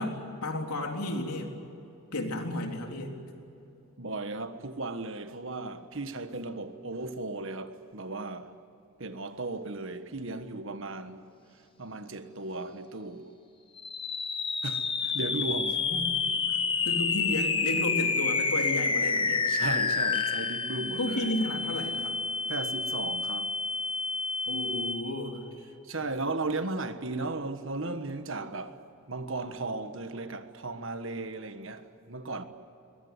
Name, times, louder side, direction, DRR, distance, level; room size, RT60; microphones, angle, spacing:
voice 1, 0.0-1.6 2.1-3.2 15.8-16.1 16.8-19.5 20.7-22.2 24.5-25.4, left 1 dB, 90° left, 3.8 m, -33 dB
voice 2, 4.0-8.5 9.0-11.3 11.8-13.3 14.6-15.8 16.5-16.6 19.5-21.3 22.5-23.6 25.8-28.8 29.1-32.4, right 2 dB, 60° right, 1.5 m, -36 dB
sound 1, 13.8-25.3, left 4 dB, 25° left, 1.1 m, -29 dB
22.5 x 21.5 x 9.6 m
head